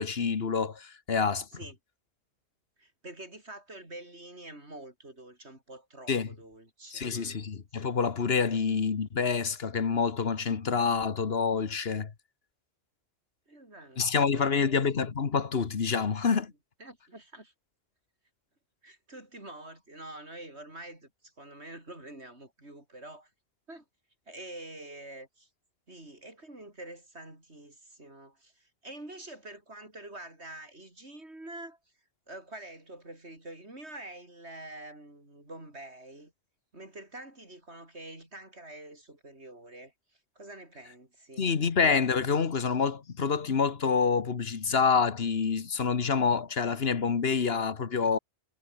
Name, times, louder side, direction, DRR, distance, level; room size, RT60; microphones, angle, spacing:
voice 1, 0.0-1.5 6.1-6.3 6.9-12.1 14.0-16.5 41.4-48.2, left 5 dB, 65° left, 1.5 m, -27 dB
voice 2, 2.8-7.6 8.4-8.6 13.5-14.0 14.4-14.8 16.8-17.5 18.8-23.3 23.7-23.8 24.3-25.5 25.9-31.8 32.3-36.3 36.7-41.5, right 1 dB, 75° right, 6.7 m, -46 dB
omnidirectional pair, 1.1 m